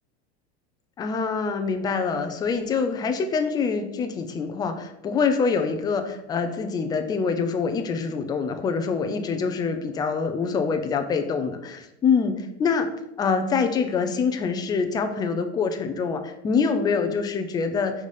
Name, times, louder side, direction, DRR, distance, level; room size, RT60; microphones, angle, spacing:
voice 1, 1.0-12.9 13.2-17.9, left 5 dB, 15° left, 6 dB, 0.4 m, -25 dB
5.2 x 4.1 x 4.9 m, 0.83 s
supercardioid pair, 155°, 33 cm